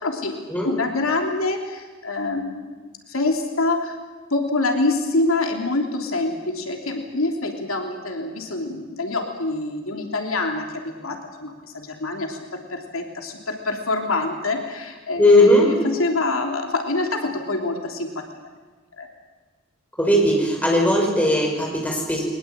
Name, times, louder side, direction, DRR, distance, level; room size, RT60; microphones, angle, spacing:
voice 1, 0.0-2.7 3.1-4.0 4.3-18.3 19.0-19.1, left 2 dB, 85° left, 3 dB, 3.3 m, -26 dB
voice 2, 15.2-15.7 20.0-22.2, left 1 dB, 5° left, -1 dB, 5.6 m, -17 dB
22.0 x 20.5 x 8.8 m, 1.4 s
head